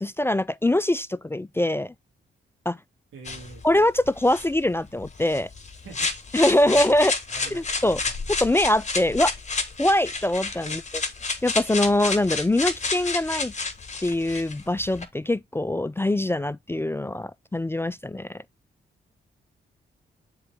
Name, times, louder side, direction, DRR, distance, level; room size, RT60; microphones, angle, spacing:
voice 1, 0.0-1.9 2.7-2.8 3.6-5.5 6.3-7.1 7.5-8.0 8.4-9.3 9.8-10.8 11.4-13.5 14.0-18.4, left 1 dB, 10° left, 0.3 m, -23 dB
voice 2, 3.1-3.6 5.8-6.1 6.6-7.0 7.3-7.7 8.0-8.1 10.6-10.8, right 4 dB, 90° right, 2.5 m, -44 dB
sound 1, 3.2-15.0, left 4 dB, 35° left, 1.4 m, -31 dB
7.2 x 3.8 x 3.5 m
cardioid pair, 55°, 20 cm